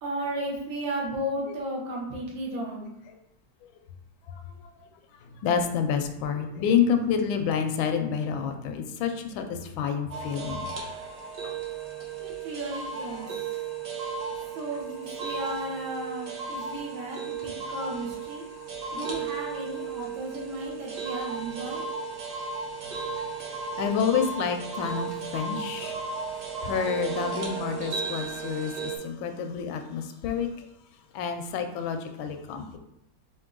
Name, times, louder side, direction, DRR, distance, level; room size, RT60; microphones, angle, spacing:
voice 1, 0.0-2.9 12.2-13.6 14.6-18.5 18.9-21.8, right 1 dB, 75° right, -2 dB, 1.8 m, -34 dB
voice 2, 5.4-10.7 11.4-11.5 13.1-13.4 23.8-26.0 26.6-30.5 31.1-32.8, left 7 dB, 85° left, 6 dB, 1.3 m, -28 dB
sound 1, 10.1-29.0, right 5 dB, 55° right, 0.9 m, -35 dB
4.5 x 2.7 x 3.7 m, 0.79 s
omnidirectional pair, 2.2 m